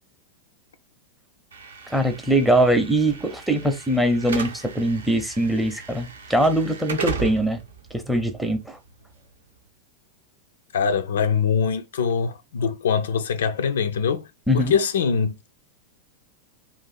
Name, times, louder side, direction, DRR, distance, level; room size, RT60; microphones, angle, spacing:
Slam / Alarm, 1.5-9.6, right 5 dB, 70° right, 0.5 m, -37 dB
voice 1, 1.9-7.6 8.1-8.8 14.5-14.8, right 1 dB, 5° right, 0.6 m, -22 dB
voice 2, 10.7-14.3 14.5-15.3, left 6 dB, 65° left, 0.3 m, -23 dB
2.5 x 2.5 x 4.0 m
figure-of-eight pair, 90°, 0 cm